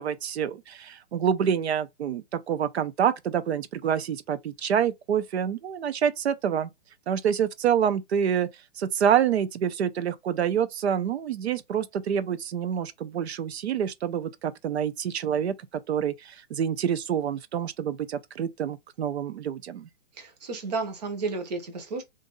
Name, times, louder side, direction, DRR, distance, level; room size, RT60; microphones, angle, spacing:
voice 1, 0.0-6.7 7.1-8.5 8.8-15.5 15.9-19.9, right 8 dB, 65° right, 0.6 m, -27 dB
voice 2, 20.2-22.0, right 3 dB, 35° right, 0.9 m, -32 dB
2.7 x 2.6 x 3.8 m
hypercardioid pair, 170°, 35 cm